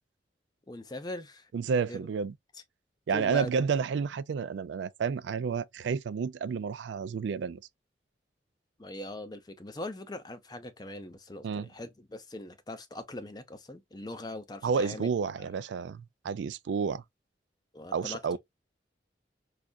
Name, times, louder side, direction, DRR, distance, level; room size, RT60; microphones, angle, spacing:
voice 1, 0.7-1.5 1.9-2.0 3.1-3.5 8.8-15.1 17.7-18.4, left 1 dB, 20° left, 0.5 m, -41 dB
voice 2, 1.5-2.3 3.1-7.6 11.4-11.7 14.6-17.0 17.9-18.4, right 6 dB, 75° right, 0.3 m, -30 dB
5.2 x 2.4 x 2.2 m
head